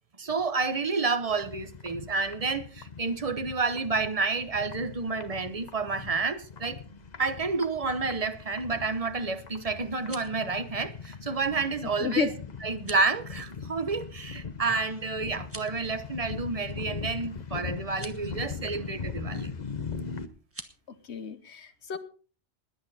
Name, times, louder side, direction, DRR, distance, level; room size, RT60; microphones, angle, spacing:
voice 1, 0.2-6.8 7.2-12.3 12.6-19.5, right 4 dB, 35° right, 1.1 m, -30 dB
sound 1, 1.3-20.3, left 5 dB, 40° left, 1.0 m, -40 dB
sound 2, 9.8-10.4 12.7-13.1 15.4-15.8 17.9-18.2 20.4-20.8, right 1 dB, 15° right, 1.1 m, -45 dB
voice 2, 12.0-12.3 21.1-22.0, left 7 dB, 80° left, 1.5 m, -31 dB
20.5 x 8.7 x 4.2 m
omnidirectional pair, 1.1 m